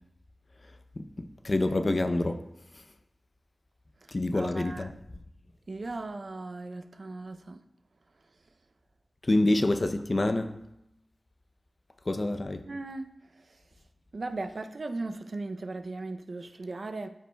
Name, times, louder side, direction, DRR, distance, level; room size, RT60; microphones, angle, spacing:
voice 1, 1.0-2.4 4.1-4.9 9.3-10.6 12.1-12.6, left 2 dB, 40° left, 0.5 m, -27 dB
voice 2, 4.3-4.9 5.7-7.6 12.7-13.1 13.5-13.6 14.1-17.1, right 2 dB, 60° right, 0.5 m, -37 dB
13.5 x 5.2 x 2.2 m
wide cardioid pair, 80°, 0 cm